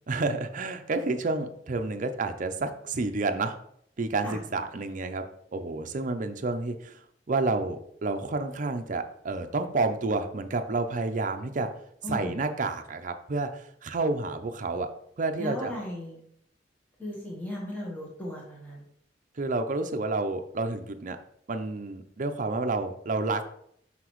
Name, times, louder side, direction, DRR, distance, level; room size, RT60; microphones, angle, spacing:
voice 1, 0.1-3.6 4.0-5.3 5.5-7.0 7.3-11.7 12.1-14.9 15.2-15.7 19.4-21.2 21.5-23.4, right 3 dB, 45° right, 7 dB, 0.6 m, -30 dB
voice 2, 12.0-12.4 15.4-16.2 17.0-18.9, equal, 10° left, -3 dB, 1.2 m, -36 dB
5.9 x 5.7 x 3.1 m, 0.69 s
head